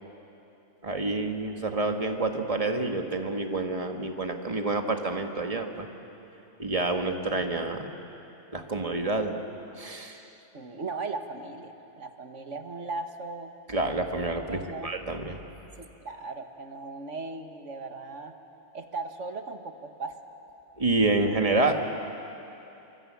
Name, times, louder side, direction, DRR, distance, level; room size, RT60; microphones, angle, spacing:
voice 1, 0.8-5.9 6.6-7.9 8.5-9.4 9.8-10.3 13.7-15.4 20.8-21.7, right 2 dB, 30° right, 4 dB, 1.7 m, -28 dB
voice 2, 10.5-13.5 14.5-14.9 16.0-18.3 18.7-20.1, right 3 dB, 70° right, 6 dB, 1.9 m, -37 dB
27.5 x 24.0 x 8.8 m, 3.0 s
omnidirectional pair, 1.3 m